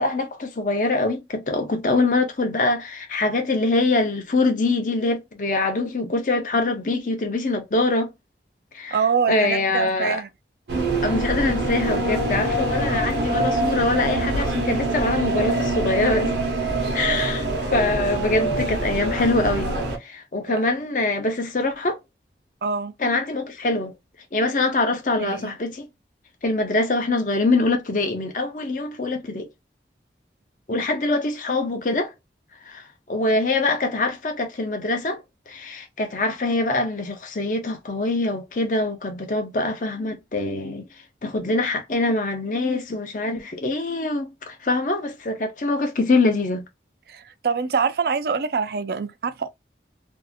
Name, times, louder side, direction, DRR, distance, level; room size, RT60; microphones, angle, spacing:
voice 1, 0.0-8.1 8.7-9.0 9.3-10.2 11.0-16.3 16.9-22.0 23.0-23.9 24.3-25.9 26.4-29.5 30.7-32.1 32.7-40.8 41.2-46.6, left 2 dB, 45° left, 0.6 m, -24 dB
voice 2, 8.9-10.3 20.5-20.6 22.6-22.9 25.2-25.5 47.1-49.5, right 5 dB, 60° right, 0.4 m, -25 dB
sound 1, 10.7-20.0, right 2 dB, 80° right, 0.8 m, -24 dB
2.6 x 2.4 x 2.5 m
head